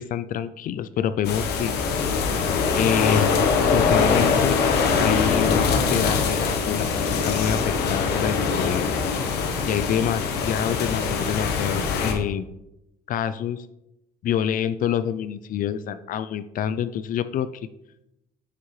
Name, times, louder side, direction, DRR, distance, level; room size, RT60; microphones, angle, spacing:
voice 1, 0.0-1.7 2.7-3.3 3.6-4.6 5.0-8.9 9.7-12.5 13.1-13.7 14.2-17.7, left 9 dB, 55° left, 13 dB, 0.4 m, -27 dB
sound 1, 1.2-12.1, left 5 dB, 80° left, 1.2 m, -23 dB
7.5 x 6.4 x 3.2 m, 0.86 s
cardioid pair, 110°, 17 cm